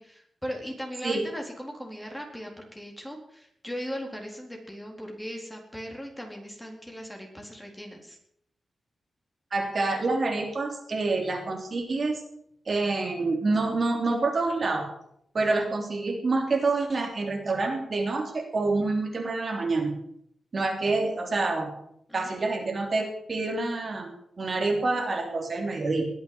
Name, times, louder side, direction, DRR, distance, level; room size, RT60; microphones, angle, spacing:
voice 1, 0.0-8.2 22.1-22.4, equal, 5° left, 1 dB, 4.2 m, -38 dB
voice 2, 9.5-12.2 12.6-14.9 15.3-19.9 20.5-21.7 22.1-26.0, right 3 dB, 45° right, 2 dB, 3.4 m, -27 dB
21.0 x 8.4 x 8.0 m, 0.72 s
wide cardioid pair, 100°, 0 cm